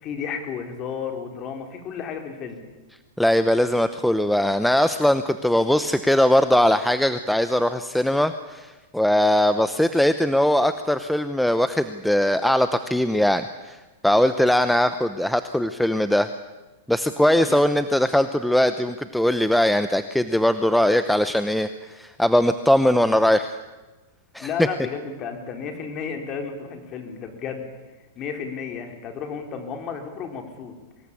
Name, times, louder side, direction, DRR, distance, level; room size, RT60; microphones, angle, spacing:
voice 1, 0.0-2.6 17.5-17.6 24.4-27.7 28.2-30.8, left 6 dB, 30° left, 4 dB, 4.3 m, -32 dB
voice 2, 3.2-13.8 14.0-16.3 16.9-23.5 24.3-24.5, left 1 dB, ahead, 10 dB, 0.8 m, -20 dB
24.5 x 20.5 x 8.6 m, 1.2 s
hypercardioid pair, 140°, 0 cm